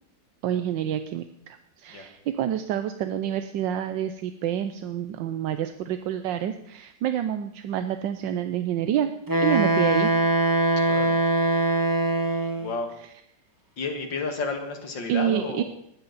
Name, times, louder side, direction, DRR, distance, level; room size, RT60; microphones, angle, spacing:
voice 1, 0.4-9.1 9.4-10.1 15.1-15.6, right 10 dB, 85° right, 9 dB, 1.4 m, -28 dB
Wind instrument woodwind instrument, 9.3-12.8, right 2 dB, 15° right, 0.9 m, -22 dB
voice 2, 10.8-11.2 12.6-12.9 13.8-15.6, left 4 dB, 85° left, 5 dB, 2.7 m, -31 dB
20.0 x 13.0 x 4.1 m, 0.75 s
omnidirectional pair, 2.0 m